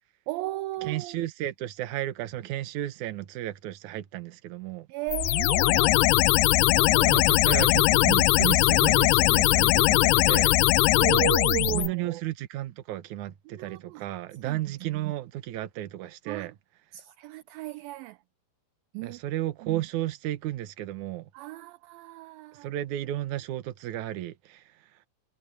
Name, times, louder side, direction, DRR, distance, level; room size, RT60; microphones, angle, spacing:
voice 1, 0.3-1.2 4.9-7.2 11.0-12.2 13.5-14.1 14.4-15.1 16.3-16.5 16.9-18.2 18.9-19.2 19.6-19.8 21.3-22.7, right 18 dB, 80° right, 2.2 m, -35 dB
voice 2, 0.8-4.9 7.0-10.5 11.7-16.5 19.0-21.3 22.6-24.6, right 14 dB, 65° right, 2.2 m, -33 dB
sound 1, 5.1-11.9, left 19 dB, 85° left, 2.6 m, -20 dB
omnidirectional pair, 4.5 m